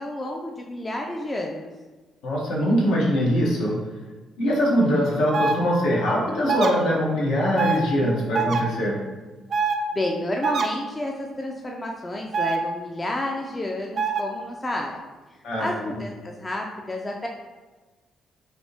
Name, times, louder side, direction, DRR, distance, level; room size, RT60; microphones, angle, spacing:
voice 1, 0.0-1.7 4.4-5.0 9.9-14.9 15.6-17.3, left 1 dB, 20° left, 0 dB, 0.3 m, -30 dB
voice 2, 2.2-3.7 4.4-9.0 15.4-15.9, equal, 85° left, -4 dB, 0.9 m, -22 dB
sound 1, 5.3-5.6 6.5-6.7 7.6-7.8 8.3-8.6 9.5-9.8 10.4-10.7 12.3-12.6 14.0-14.2, right 5 dB, 50° right, 0.4 m, -23 dB
3.4 x 2.6 x 2.7 m, 1.2 s
cardioid pair, 90°, 0 cm